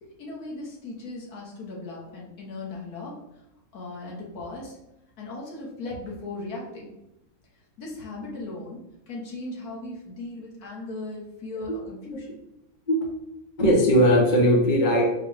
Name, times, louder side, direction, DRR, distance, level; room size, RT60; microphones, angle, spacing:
voice 1, 0.0-3.1 3.7-4.8 5.2-6.9 7.8-12.4, left 2 dB, 90° left, -4 dB, 1.6 m, -37 dB
voice 2, 13.6-15.0, equal, 40° left, 0 dB, 0.8 m, -19 dB
4.5 x 2.3 x 4.7 m, 0.88 s
omnidirectional pair, 1.5 m